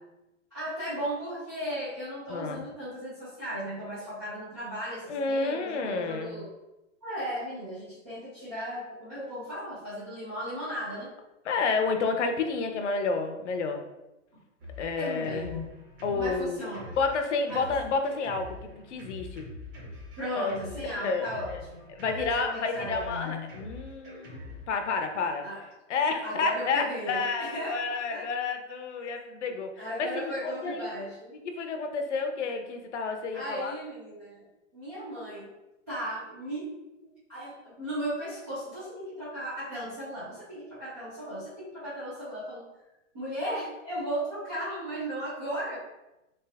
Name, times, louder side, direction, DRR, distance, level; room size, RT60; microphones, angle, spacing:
voice 1, 0.5-6.5 7.0-11.1 15.0-15.6 16.1-16.9 17.5-17.7 20.2-23.5 25.4-25.7 26.2-28.2 29.8-31.3 33.3-34.5 34.7-35.5 35.9-42.6 43.1-45.8, equal, 15° right, -12 dB, 0.3 m, -36 dB
voice 2, 2.3-2.6 5.1-6.5 11.4-13.8 14.8-15.5 16.0-16.6 17.0-19.5 20.3-20.6 21.0-21.6 22.0-25.5 25.9-29.7 30.0-30.9 31.4-33.7, left 4 dB, 65° left, 5 dB, 0.7 m, -30 dB
Drum kit, 14.6-24.7, left 2 dB, 40° right, 1.5 m, -45 dB
3.4 x 3.1 x 3.4 m, 0.96 s
hypercardioid pair, 155°, 38 cm